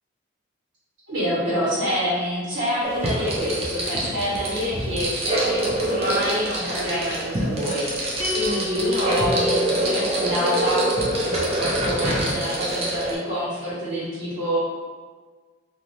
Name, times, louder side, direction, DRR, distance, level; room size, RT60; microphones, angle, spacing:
voice 1, 1.1-10.8 11.1-14.6, equal, 75° right, -11 dB, 1.2 m, -27 dB
sound 1, 2.8-13.1, right 1 dB, 30° right, 0.4 m, -25 dB
sound 2, 8.2-10.7, left 2 dB, 30° left, 0.4 m, -29 dB
2.5 x 2.4 x 3.0 m, 1.4 s
head